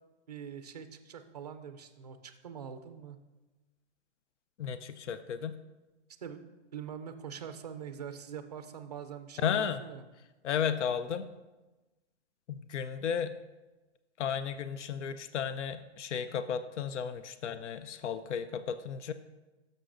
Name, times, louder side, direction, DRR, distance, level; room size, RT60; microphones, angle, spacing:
voice 1, 0.3-3.2 6.2-10.0, right 7 dB, 35° right, 9 dB, 0.4 m, -44 dB
voice 2, 4.6-5.5 9.4-9.8 10.4-11.3 12.5-13.3 14.2-19.1, left 7 dB, 85° left, 12 dB, 0.6 m, -34 dB
11.0 x 6.7 x 2.5 m, 1.1 s
hypercardioid pair, 180°, 34 cm